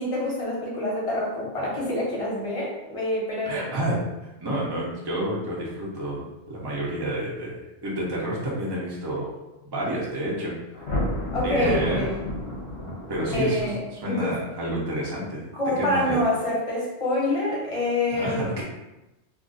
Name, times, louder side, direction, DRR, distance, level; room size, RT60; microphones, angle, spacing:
voice 1, 0.0-3.7 11.3-12.1 13.3-14.3 15.5-18.4, left 1 dB, 30° left, -5 dB, 0.9 m, -26 dB
voice 2, 3.5-4.0 4.4-9.3 9.7-10.5 11.4-12.0 13.1-15.5 15.8-16.2 18.1-18.6, right 1 dB, 25° right, -5 dB, 0.6 m, -29 dB
Thunder, 10.7-14.1, left 1 dB, 65° left, 0.8 m, -30 dB
2.4 x 2.3 x 3.8 m, 0.99 s
omnidirectional pair, 1.2 m